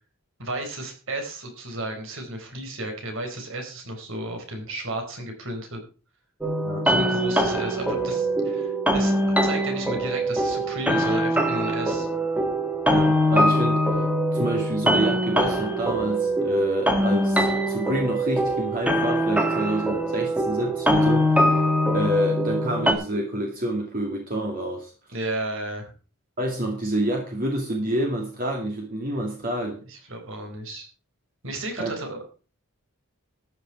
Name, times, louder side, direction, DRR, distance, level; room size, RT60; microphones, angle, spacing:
voice 1, 0.4-5.9 6.8-9.2 9.4-12.1 25.1-25.9 29.8-30.9 31.4-32.3, right 1 dB, 60° right, 4 dB, 4.4 m, -33 dB
sound 1, 6.4-22.9, equal, 5° right, 1.7 m, -23 dB
voice 2, 12.9-14.0 14.3-21.6 21.9-24.9 26.4-29.8 31.8-31.9, right 1 dB, 40° right, 1 dB, 2.4 m, -28 dB
14.0 x 9.2 x 4.7 m, 0.35 s
head